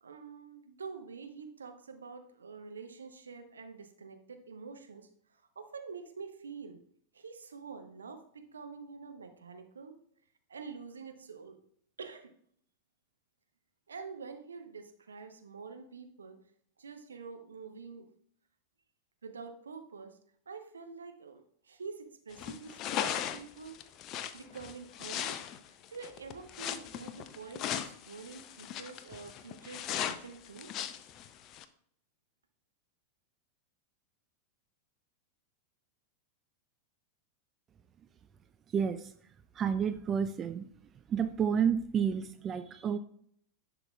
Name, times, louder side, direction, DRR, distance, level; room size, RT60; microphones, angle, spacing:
voice 1, 0.0-5.1 5.6-6.8 7.1-10.0 10.5-11.6 12.0-12.3 13.9-16.4 16.8-18.1 19.2-20.2 20.5-23.8 24.3-25.4 25.7-30.7, right 5 dB, 70° right, 6 dB, 0.8 m, -47 dB
sound 1, 22.3-31.6, left 10 dB, 35° left, 0.5 m, -38 dB
voice 2, 38.7-39.1 39.6-40.7 41.1-43.0, right 7 dB, 25° right, 10 dB, 0.4 m, -30 dB
10.5 x 5.9 x 2.3 m, 0.64 s
figure-of-eight pair, 90°, 0 cm